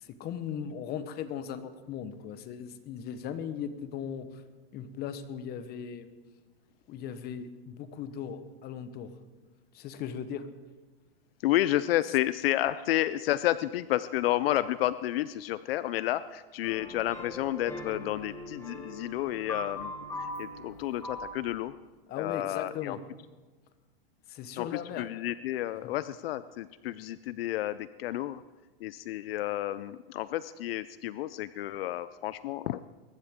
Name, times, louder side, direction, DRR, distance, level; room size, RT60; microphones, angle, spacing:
voice 1, 0.0-4.4 4.7-6.1 6.9-9.1 9.7-10.5 22.1-23.0 24.3-25.1 25.8-25.9, left 8 dB, 30° left, 12 dB, 1.1 m, -38 dB
voice 2, 11.4-19.9 20.2-21.7 22.2-23.0 24.6-28.4 28.8-33.0, left 14 dB, 75° left, 16 dB, 0.5 m, -31 dB
sound 1, 16.6-21.6, left 1 dB, 10° left, 2.5 m, -41 dB
22.0 x 12.5 x 3.7 m, 1.3 s
supercardioid pair, 135°, 30 cm